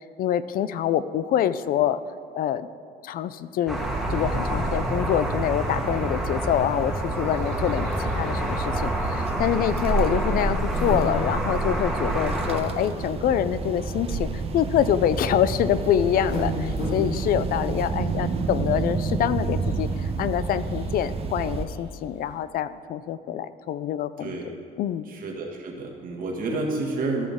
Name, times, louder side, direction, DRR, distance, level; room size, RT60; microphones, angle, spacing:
voice 1, 0.0-2.0 2.3-2.7 3.0-3.8 4.1-14.3 14.5-19.9 20.2-24.3 24.8-25.1, left 10 dB, 60° left, 15 dB, 0.4 m, -25 dB
sound 1, 3.7-12.6, right 1 dB, ahead, 1.4 m, -28 dB
sound 2, 3.8-21.7, right 4 dB, 35° right, 0.7 m, -30 dB
sound 3, 7.0-22.4, left 2 dB, 80° left, 2.4 m, -39 dB
voice 2, 25.1-27.3, right 3 dB, 55° right, 0 dB, 1.7 m, -30 dB
14.0 x 6.4 x 3.6 m, 2.5 s
cardioid pair, 110°, 17 cm